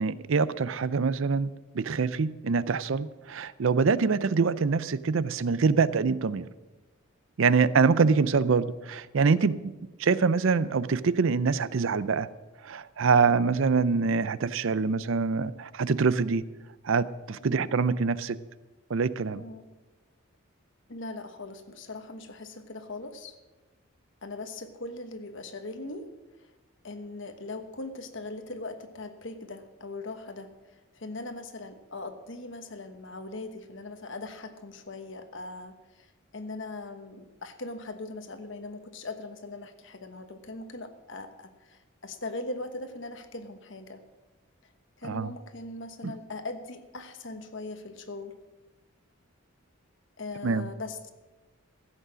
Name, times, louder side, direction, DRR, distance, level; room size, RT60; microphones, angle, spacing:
voice 1, 0.0-6.4 7.4-9.7 10.0-12.3 12.6-16.4 16.8-18.4 18.9-19.4 45.0-45.3 46.0-46.1 50.4-50.7, right 5 dB, 65° right, 17 dB, 0.5 m, -25 dB
voice 2, 17.4-17.7 19.3-19.7 20.9-23.4 24.2-26.1 26.4-26.5 26.8-44.0 45.0-48.3 50.2-51.1, left 2 dB, 60° left, 8 dB, 1.2 m, -40 dB
15.5 x 8.2 x 6.2 m, 1.2 s
head